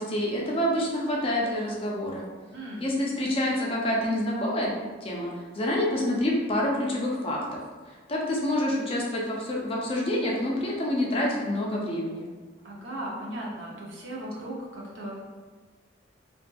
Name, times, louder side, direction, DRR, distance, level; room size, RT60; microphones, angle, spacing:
voice 1, 0.0-2.2 2.8-4.7 5.0-7.6 8.1-12.2, left 1 dB, 30° left, -2 dB, 0.4 m, -27 dB
voice 2, 2.5-2.8 12.6-15.2, right 1 dB, 70° right, -3 dB, 0.6 m, -37 dB
2.5 x 2.5 x 2.2 m, 1.4 s
head